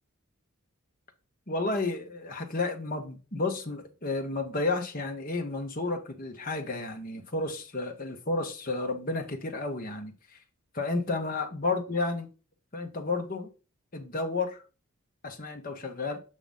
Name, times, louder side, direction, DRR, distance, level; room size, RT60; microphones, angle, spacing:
voice 1, 1.5-10.4 10.7-12.3 12.7-13.5 13.9-14.6 15.2-16.2, left 3 dB, 40° left, 1.1 m, -32 dB
7.4 x 2.9 x 5.3 m
head